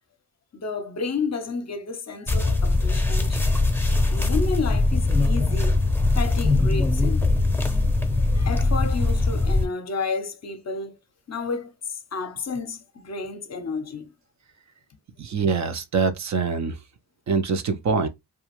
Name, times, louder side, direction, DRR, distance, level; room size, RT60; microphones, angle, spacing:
voice 1, 0.5-3.4 4.1-5.8 6.1-7.3 8.3-11.0 11.3-14.1, left 4 dB, 40° left, 0.7 m, -31 dB
sound 1, 2.3-9.7, left 2 dB, 5° left, 0.7 m, -21 dB
voice 2, 15.2-16.7 17.3-18.1, right 5 dB, 45° right, 0.6 m, -24 dB
2.4 x 2.3 x 2.9 m
supercardioid pair, 50°, 41 cm